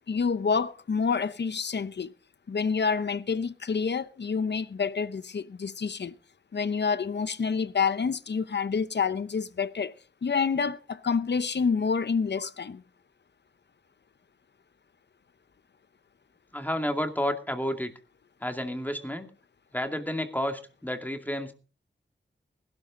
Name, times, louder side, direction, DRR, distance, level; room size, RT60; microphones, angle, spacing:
voice 1, 0.1-2.1 2.5-6.2 6.5-10.0 10.2-12.8, left 5 dB, 70° left, 0.9 m, -28 dB
voice 2, 16.5-17.9 18.4-19.3 19.7-21.5, equal, 10° left, 2.4 m, -31 dB
20.0 x 12.5 x 3.8 m
wide cardioid pair, 90°, 18 cm